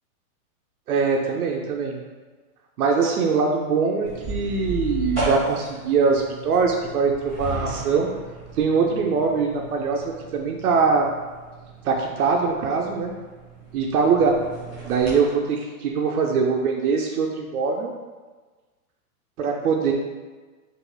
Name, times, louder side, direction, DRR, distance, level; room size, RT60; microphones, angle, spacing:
voice 1, 0.9-2.0 2.8-8.1 8.6-11.1 11.8-13.1 13.7-14.5 14.8-17.9 19.4-19.9, right 5 dB, 75° right, 1 dB, 0.5 m, -22 dB
sound 1, 4.0-15.2, right 1 dB, 5° left, 0.5 m, -35 dB
4.7 x 2.4 x 2.2 m, 1.3 s
hypercardioid pair, 180°, 45 cm